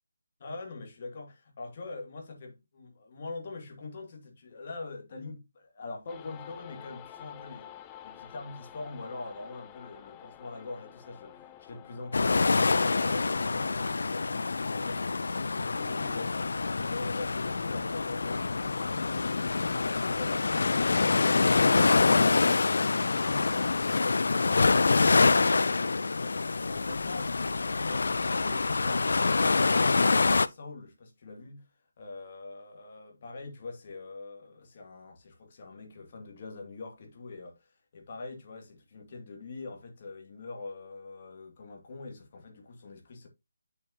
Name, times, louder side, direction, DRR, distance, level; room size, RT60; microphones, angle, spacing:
voice 1, 0.4-7.7 8.0-25.8 26.2-31.7 32.0-43.3, left 3 dB, 40° left, 2.4 m, -43 dB
sound 1, 6.1-14.2, left 11 dB, 15° left, 0.6 m, -50 dB
sound 2, 12.1-30.5, left 3 dB, 70° left, 0.5 m, -26 dB
8.9 x 6.6 x 2.9 m
figure-of-eight pair, 165°, 0 cm